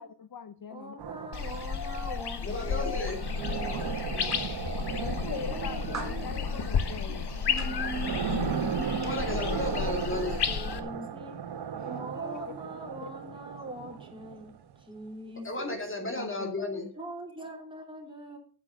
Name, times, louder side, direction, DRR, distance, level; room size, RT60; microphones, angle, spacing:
voice 1, 0.0-1.0 4.2-4.3 5.0-7.3 9.6-10.1 13.0-13.1 16.2-16.5, left 7 dB, 60° left, 0.8 m, -42 dB
voice 2, 0.7-4.3 4.9-6.4 10.1-11.5 11.8-14.5 14.8-15.8 17.0-18.4, right 1 dB, 10° right, 3.0 m, -43 dB
sound 1, 1.0-14.8, right 8 dB, 75° right, 1.0 m, -37 dB
sound 2, 1.3-10.8, left 6 dB, 75° left, 1.2 m, -32 dB
voice 3, 2.4-3.3 9.0-10.4 15.4-16.9, left 2 dB, 30° left, 2.3 m, -33 dB
voice 4, 7.5-9.3 11.7-12.5 17.4-17.5, right 2 dB, 45° right, 4.0 m, -38 dB
8.9 x 7.9 x 6.2 m
wide cardioid pair, 150°, 40 cm